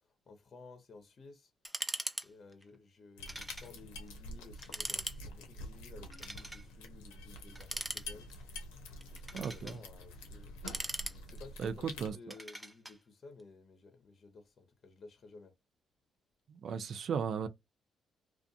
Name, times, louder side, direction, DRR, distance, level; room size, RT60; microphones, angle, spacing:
voice 1, 0.3-1.5 2.2-8.3 9.3-10.5 11.3-15.5, left 3 dB, 50° left, 0.7 m, -55 dB
sound 1, 1.6-2.3 2.5-2.6 3.3-3.7 4.1-4.2 4.6-5.2 6.1-6.6 7.5-8.4 9.0-9.8 10.4-11.6 12.3-13.0, right 1 dB, 10° right, 0.6 m, -40 dB
sound 2, 3.2-12.1, left 1 dB, 90° left, 0.6 m, -47 dB
voice 2, 9.3-9.7 11.6-12.1 16.5-17.5, right 6 dB, 65° right, 0.5 m, -36 dB
2.5 x 2.3 x 2.3 m
supercardioid pair, 55°, 0 cm